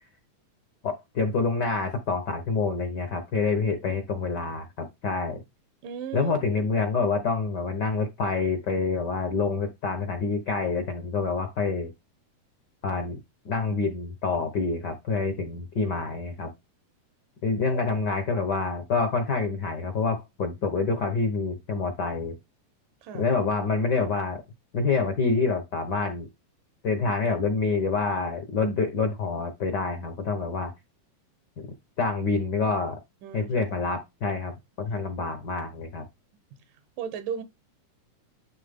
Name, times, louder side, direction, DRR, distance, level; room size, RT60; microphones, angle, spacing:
voice 1, 0.8-5.4 6.1-11.9 12.8-13.2 13.4-16.5 17.4-22.4 23.2-24.4 24.7-26.3 26.8-30.7 31.6-31.7 32.0-33.0 33.3-36.0, left 4 dB, 75° left, 0.9 m, -27 dB
voice 2, 5.8-6.4 17.7-17.8 23.0-23.3 33.2-33.5 37.0-37.4, right 8 dB, 85° right, 2.7 m, -35 dB
11.0 x 3.7 x 3.6 m
omnidirectional pair, 3.7 m